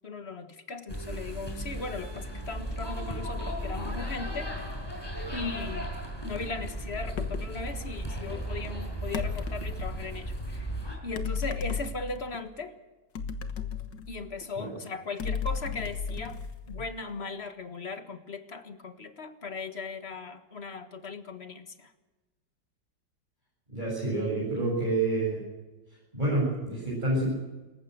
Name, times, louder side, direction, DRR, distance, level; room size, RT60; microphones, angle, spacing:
voice 1, 0.0-4.5 5.3-5.9 6.2-10.7 11.0-12.7 14.1-16.4 16.7-21.9, left 3 dB, 40° left, 8 dB, 1.7 m, -38 dB
sound 1, 0.9-11.0, equal, 15° left, 5.5 m, -36 dB
sound 2, 7.1-7.6 9.1-10.1 11.2-12.4 13.2-14.5 15.2-17.1, left 6 dB, 85° left, 2.0 m, -34 dB
voice 2, 23.7-25.4 26.1-27.3, right 2 dB, 25° right, -6 dB, 7.6 m, -28 dB
26.5 x 15.0 x 8.0 m, 1.2 s
omnidirectional pair, 1.9 m